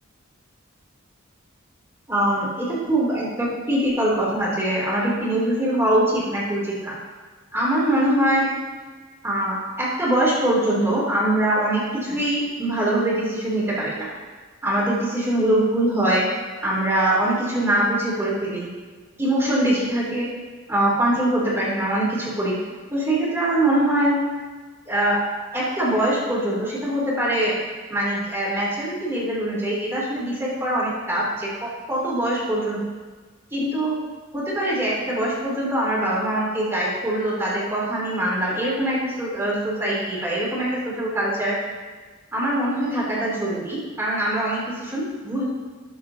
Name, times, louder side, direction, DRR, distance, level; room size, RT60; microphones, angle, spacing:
voice 1, 2.1-6.9 7.5-8.5 9.2-14.1 14.6-16.2 16.6-18.7 19.2-20.3 20.7-22.6 22.9-24.2 24.9-25.2 25.5-27.5 27.9-31.5 31.9-32.8 33.5-34.0 34.3-41.5 42.3-45.4, right 1 dB, 10° right, -6 dB, 3.0 m, -23 dB
18.0 x 7.1 x 2.8 m, 1.4 s
head